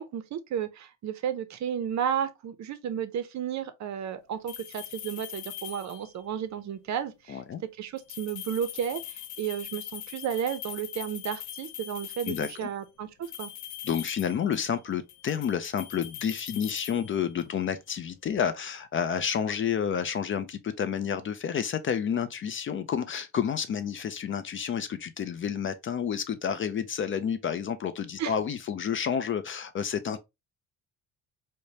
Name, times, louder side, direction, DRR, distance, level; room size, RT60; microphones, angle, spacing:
voice 1, 0.0-7.4 7.8-13.5 28.2-28.3, right 9 dB, 50° right, 0.6 m, -33 dB
sound 1, 4.5-6.2 8.0-12.7 13.2-14.8 15.1-17.6, left 12 dB, 85° left, 0.6 m, -42 dB
voice 2, 7.3-7.6 12.3-12.7 13.8-30.2, left 8 dB, 35° left, 0.4 m, -30 dB
4.7 x 2.2 x 2.7 m
cardioid pair, 115°, 35 cm